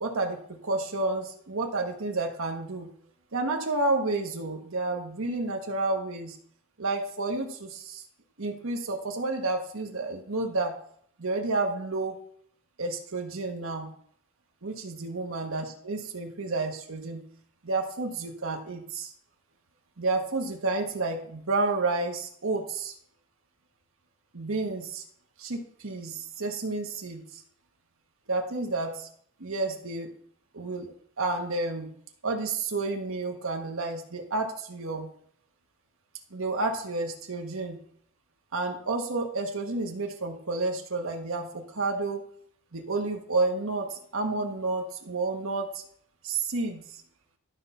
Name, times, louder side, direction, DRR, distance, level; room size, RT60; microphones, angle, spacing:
voice 1, 0.0-2.9 3.3-6.4 6.8-8.0 8.4-10.7 11.2-12.1 12.8-13.9 14.6-17.2 17.6-19.1 20.0-22.9 24.3-25.0 25.4-27.4 28.3-29.1 29.4-30.1 30.5-30.9 31.2-31.9 32.2-35.1 36.3-37.8 38.5-42.2 42.7-45.8 46.2-47.0, right 3 dB, 70° right, 2 dB, 1.2 m, -30 dB
12.0 x 5.6 x 4.2 m, 0.62 s
head